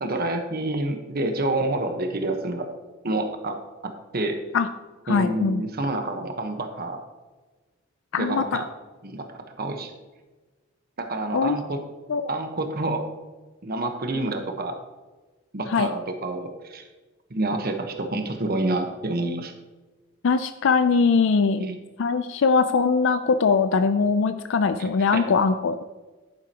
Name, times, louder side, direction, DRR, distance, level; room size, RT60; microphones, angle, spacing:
voice 1, 0.0-2.7 3.0-3.6 3.8-4.4 5.1-7.0 8.2-8.6 9.0-9.9 11.0-11.8 12.3-13.1 13.6-14.7 15.5-16.9 17.3-19.5 21.6-21.8 24.8-25.2, right 2 dB, 50° right, 5 dB, 1.1 m, -28 dB
voice 2, 5.1-5.6 8.1-8.6 11.3-11.6 12.1-12.3 15.7-15.9 20.2-21.7 22.0-25.8, left 5 dB, 65° left, 10 dB, 0.4 m, -21 dB
10.5 x 9.8 x 2.9 m, 1.2 s
head